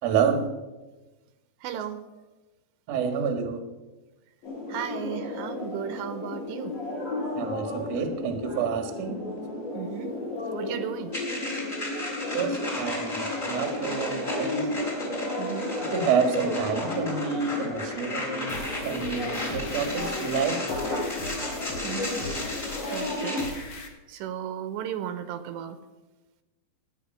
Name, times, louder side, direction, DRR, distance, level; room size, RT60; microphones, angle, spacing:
voice 1, 0.0-0.4 2.9-3.6 7.4-9.2 12.3-14.7 15.9-20.6, right 6 dB, 50° right, 5 dB, 2.2 m, -28 dB
voice 2, 1.6-2.0 4.7-6.8 9.7-10.1 10.5-11.1 15.4-15.7 21.8-22.2 22.9-23.5 24.1-25.8, right 9 dB, 80° right, 10 dB, 3.0 m, -35 dB
sound 1, 4.4-23.5, left 2 dB, 85° left, 6.7 m, -33 dB
sound 2, 11.1-23.5, left 1 dB, 20° left, 4.2 m, -35 dB
sound 3, 18.5-23.9, left 2 dB, 60° left, 1.3 m, -40 dB
18.0 x 9.7 x 5.6 m, 1.1 s
omnidirectional pair, 5.0 m